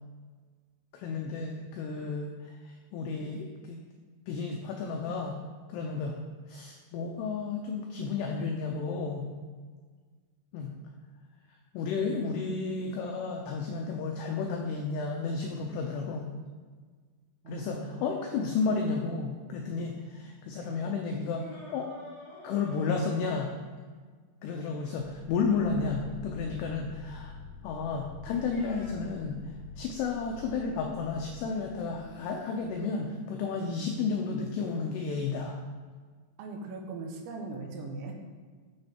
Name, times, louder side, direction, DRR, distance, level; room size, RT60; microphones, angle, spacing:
voice 1, 0.9-2.5 2.9-3.8 4.3-5.4 5.7-6.2 6.5-9.3 10.5-10.7 11.7-16.3 17.5-21.4 21.7-21.9 22.4-23.5 24.4-27.4 27.6-29.4 29.8-35.6, left 4 dB, 85° left, 2 dB, 2.3 m, -32 dB
voice 2, 17.4-18.1 36.4-38.1, right 3 dB, 80° right, 2 dB, 2.8 m, -39 dB
sound 1, 21.3-23.9 26.5-26.6 28.3-28.9, left 2 dB, 45° left, 2.4 m, -48 dB
sound 2, 25.0-32.8, left 4 dB, 55° right, 1.8 m, -47 dB
9.7 x 6.9 x 2.8 m, 1.5 s
omnidirectional pair, 5.5 m